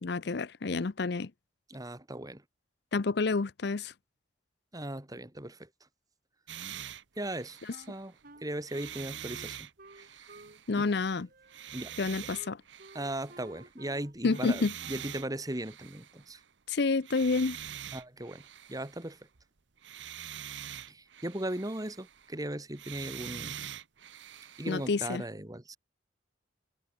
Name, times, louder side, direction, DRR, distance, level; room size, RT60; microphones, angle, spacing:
voice 1, 0.0-1.3 2.9-3.9 10.7-11.3 12.0-12.6 14.2-14.7 16.7-17.6 24.7-25.2, left 3 dB, 60° left, 0.6 m, -29 dB
voice 2, 1.7-2.4 4.7-5.7 7.2-7.6 7.9-8.1 8.4-10.4 10.8-10.9 11.7-12.0 12.9-16.4 17.9-19.2 20.9-23.6 24.6-25.8, right 1 dB, 20° right, 2.0 m, -38 dB
sound 1, 6.5-8.2 8.6-11.0 11.5-13.8 14.2-16.4 17.0-19.4 19.8-22.4 22.7-24.9, right 10 dB, 70° right, 0.9 m, -45 dB
Wind instrument woodwind instrument, 7.7-10.6 10.8-15.3, right 2 dB, 50° right, 2.3 m, -54 dB
head